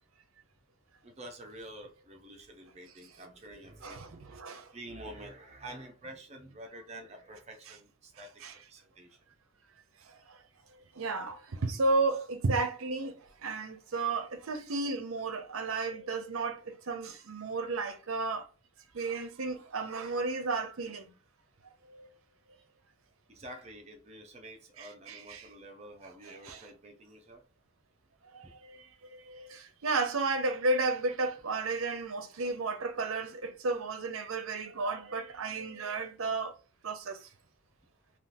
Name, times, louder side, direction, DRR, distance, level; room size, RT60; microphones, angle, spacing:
voice 1, 1.0-4.4 4.7-8.3 8.7-9.2 17.7-17.9 23.3-27.4, right 1 dB, 30° right, 0.7 m, -48 dB
voice 2, 3.8-4.7 8.4-8.5 10.1-10.4 10.9-18.5 18.9-21.1 21.9-22.1 24.8-25.5 26.4-26.6 28.3-36.5 36.8-37.3, right 3 dB, 75° right, 0.6 m, -33 dB
3.6 x 2.4 x 2.6 m
head